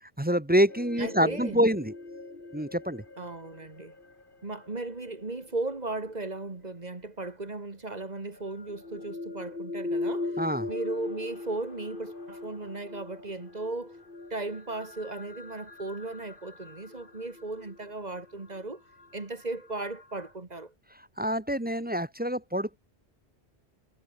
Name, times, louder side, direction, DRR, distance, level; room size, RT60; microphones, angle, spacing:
voice 1, 0.2-1.9 2.5-3.0 10.4-10.7 21.2-22.8, equal, 10° right, 0.9 m, -26 dB
sound 1, 0.7-6.7 7.9-20.3, left 2 dB, 50° left, 3.0 m, -41 dB
voice 2, 1.0-1.6 3.2-3.9 4.4-10.3 10.7-14.0 14.3-18.8 19.1-20.7, right 2 dB, 40° right, 2.0 m, -36 dB
omnidirectional pair, 1.1 m